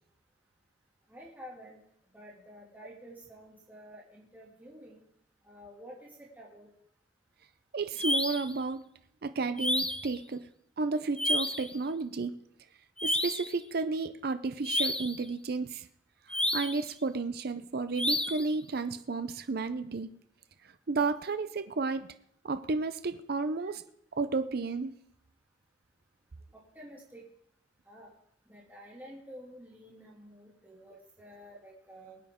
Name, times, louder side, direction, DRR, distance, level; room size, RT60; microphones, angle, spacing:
voice 1, 1.1-1.8 2.1-5.0 5.4-6.7 26.5-27.2 27.9-28.1 28.5-32.2, equal, 10° right, -5 dB, 2.6 m, -50 dB
voice 2, 7.7-8.8 9.2-10.5 10.8-12.3 13.0-15.9 16.5-20.1 20.9-22.1 22.4-23.8 24.2-24.9, right 3 dB, 60° right, 10 dB, 0.6 m, -32 dB
sound 1, 8.0-8.5 9.6-10.1 11.2-11.7 13.0-13.5 14.6-15.2 16.3-16.9 17.9-18.5, left 1 dB, 5° left, 0.8 m, -30 dB
21.0 x 9.2 x 3.7 m, 0.71 s
head